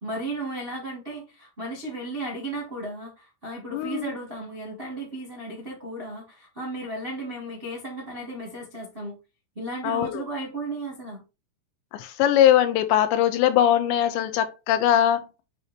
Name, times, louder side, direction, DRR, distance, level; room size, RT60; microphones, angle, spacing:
voice 1, 0.0-9.1 9.5-11.2, right 2 dB, 35° right, 0.8 m, -35 dB
voice 2, 3.7-4.1 9.8-10.2 11.9-15.2, left 11 dB, 85° left, 3.0 m, -21 dB
8.2 x 2.8 x 4.6 m
omnidirectional pair, 5.2 m